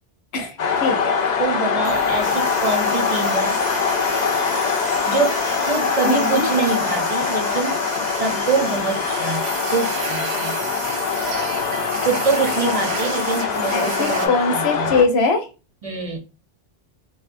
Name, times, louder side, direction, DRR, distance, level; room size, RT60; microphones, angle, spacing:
voice 1, 0.3-1.0 6.1-6.5 13.7-15.5, left 4 dB, 90° left, 5 dB, 1.0 m, -21 dB
sound 1, 0.6-15.0, left 6 dB, 55° left, 0.6 m, -23 dB
voice 2, 1.4-3.6 5.0-7.8 8.1-9.4 9.7-10.6 12.0-14.9 15.8-16.2, right 4 dB, 40° right, 2 dB, 0.6 m, -24 dB
sound 2, 1.8-14.3, right 5 dB, 90° right, 0.8 m, -32 dB
4.2 x 2.1 x 2.5 m, 0.31 s
omnidirectional pair, 1.0 m